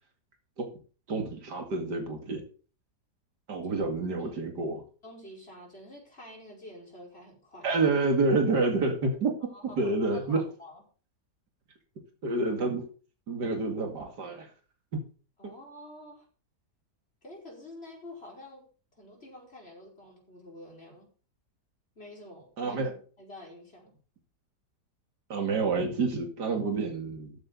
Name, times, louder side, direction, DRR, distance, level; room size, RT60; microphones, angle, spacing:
voice 1, 1.1-2.4 3.5-4.8 7.6-9.3 9.8-10.4 12.2-12.9 13.3-14.5 15.4-15.5 22.6-22.9 25.3-27.4, right 3 dB, 75° right, 4 dB, 3.0 m, -28 dB
voice 2, 5.0-7.8 9.5-10.8 15.4-16.3 17.2-18.7 18.9-21.1 22.0-22.8 23.2-23.9, left 1 dB, 35° left, -1 dB, 5.2 m, -48 dB
14.5 x 9.6 x 4.1 m, 0.37 s
omnidirectional pair, 1.8 m